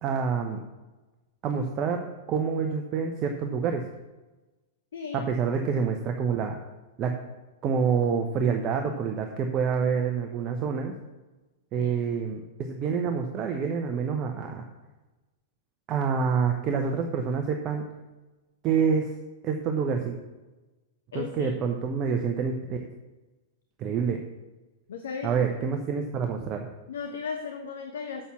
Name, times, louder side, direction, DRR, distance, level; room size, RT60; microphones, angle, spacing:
voice 1, 0.0-0.6 1.4-2.0 2.3-3.8 5.1-6.5 7.0-7.1 7.6-10.9 11.7-14.6 15.9-17.8 18.6-19.1 19.4-20.2 21.1-22.8 23.8-24.2 25.2-26.7, right 6 dB, 30° right, 4 dB, 0.9 m, -27 dB
voice 2, 4.9-5.3 11.8-11.9 21.1-21.5 24.9-25.4 26.9-28.3, left 6 dB, 60° left, 6 dB, 0.9 m, -36 dB
7.5 x 6.9 x 5.8 m, 1.2 s
figure-of-eight pair, 100°, 0 cm